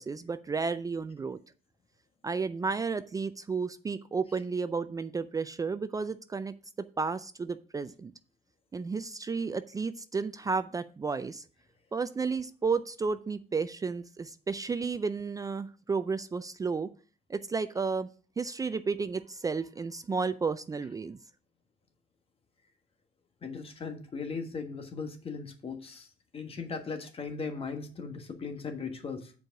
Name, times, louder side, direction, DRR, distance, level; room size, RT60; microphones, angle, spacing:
voice 1, 0.0-1.4 2.2-8.1 8.7-11.4 11.9-16.9 17.3-18.1 18.4-21.2, right 4 dB, 20° right, 12 dB, 0.4 m, -32 dB
voice 2, 23.4-26.1 26.3-29.3, left 5 dB, 35° left, 7 dB, 1.4 m, -38 dB
7.8 x 4.8 x 5.8 m, 0.39 s
cardioid pair, 110°, 17 cm